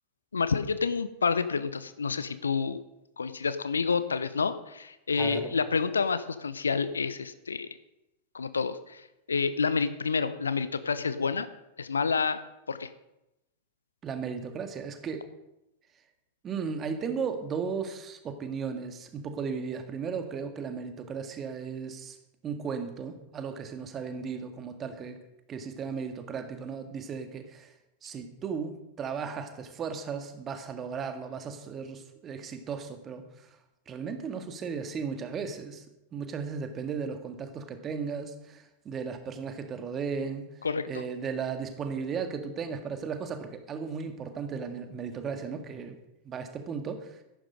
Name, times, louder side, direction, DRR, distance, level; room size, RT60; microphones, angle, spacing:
voice 1, 0.3-2.8 3.2-7.7 8.3-9.0 9.3-11.5 11.8-12.4 12.7-12.9 40.6-41.0, left 5 dB, 75° left, 13 dB, 0.8 m, -29 dB
voice 2, 5.2-5.5 14.0-15.3 16.4-22.2 22.4-25.2 25.5-27.7 28.0-33.3 33.9-35.8 36.1-40.5 40.9-46.0 46.3-47.2, right 6 dB, 25° right, 7 dB, 1.8 m, -35 dB
14.0 x 11.0 x 5.2 m, 0.91 s
figure-of-eight pair, 90°, 0 cm